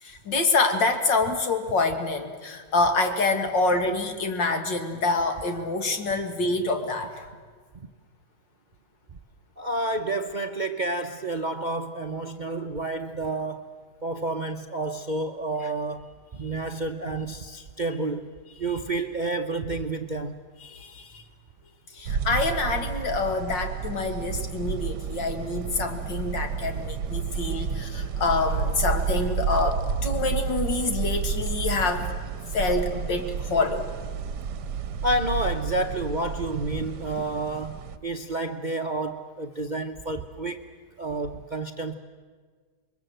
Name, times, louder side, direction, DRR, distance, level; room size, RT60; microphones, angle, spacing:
voice 1, 0.0-7.3 20.6-21.2 21.9-32.2 32.5-33.9, left 3 dB, 80° left, 2.7 m, -26 dB
voice 2, 9.6-13.7 14.0-18.3 18.6-20.3 27.6-27.8 35.0-40.6 41.0-41.9, right 2 dB, 40° right, 0.7 m, -30 dB
sound 1, 22.0-38.0, right 6 dB, 70° right, 1.5 m, -31 dB
28.0 x 22.5 x 7.8 m
omnidirectional pair, 1.9 m